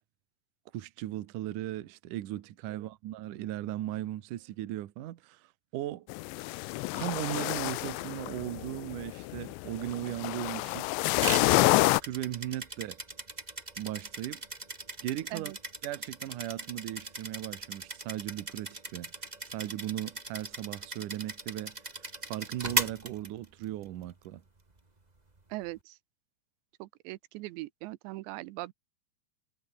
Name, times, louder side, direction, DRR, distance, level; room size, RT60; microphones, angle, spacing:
voice 1, 0.7-6.1 6.9-10.9 11.5-13.0 13.8-14.4 15.0-15.5 15.8-19.1 19.5-24.4, right 13 dB, 65° right, 2.2 m, -37 dB
sound 1, 6.1-12.0, left 22 dB, 85° left, 2.8 m, -29 dB
sound 2, 11.2-23.8, right 2 dB, 50° right, 0.5 m, -38 dB
voice 2, 25.5-26.0 26.8-28.7, right 20 dB, 85° right, 3.0 m, -40 dB
omnidirectional pair, 5.1 m